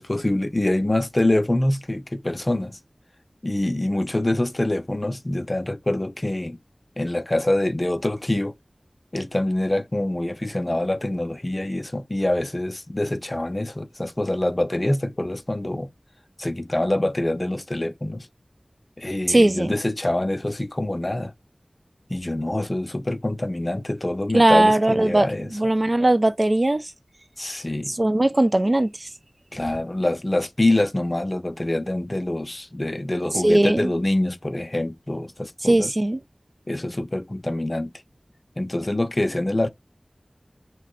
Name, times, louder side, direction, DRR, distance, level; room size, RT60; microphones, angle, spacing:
voice 1, 0.0-2.8 3.4-6.6 7.0-8.5 9.1-15.9 16.4-18.3 19.0-21.3 22.1-25.5 27.4-27.9 29.5-35.9 36.7-37.9 38.6-39.7, left 1 dB, 35° left, 0.6 m, -25 dB
voice 2, 19.3-19.7 24.3-26.9 27.9-29.1 33.3-33.9 35.6-36.2, right 1 dB, 45° right, 0.5 m, -19 dB
3.7 x 3.0 x 4.4 m
wide cardioid pair, 50°, 0 cm